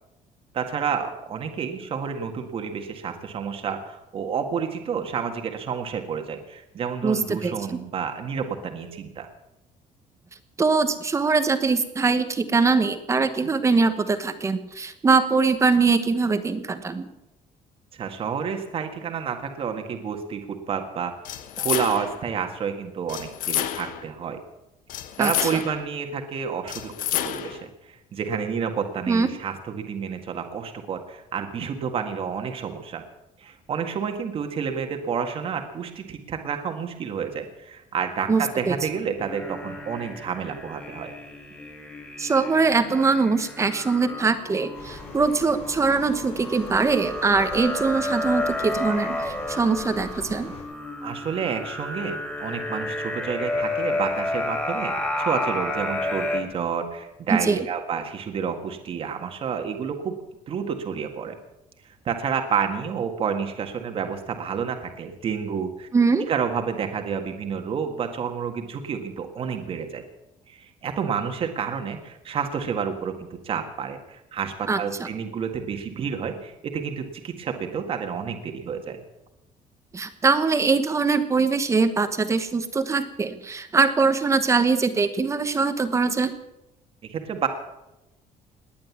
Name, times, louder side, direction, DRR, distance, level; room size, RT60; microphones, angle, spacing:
voice 1, 0.5-9.3 13.4-13.5 18.0-21.1 21.6-24.4 25.2-26.9 27.2-33.0 33.4-41.1 51.0-61.4 61.8-65.9 66.3-70.0 70.5-79.0 87.0-87.5, right 7 dB, 40° right, 5 dB, 1.7 m, -30 dB
voice 2, 7.0-7.8 10.6-17.1 25.2-25.6 29.1-29.3 38.3-38.8 42.2-50.5 57.3-57.6 65.9-66.3 74.7-75.1 79.9-86.3, right 4 dB, 20° right, 10 dB, 1.1 m, -22 dB
sound 1, 21.2-22.2 23.1-24.1 24.9-25.9 26.7-27.6, left 12 dB, 75° left, 1.2 m, -29 dB
sound 2, 39.2-56.4, left 1 dB, 10° left, 3.4 m, -31 dB
sound 3, 44.7-50.6, left 3 dB, 45° left, 5.6 m, -43 dB
19.0 x 10.5 x 7.2 m, 0.93 s
cardioid pair, 155°, 14 cm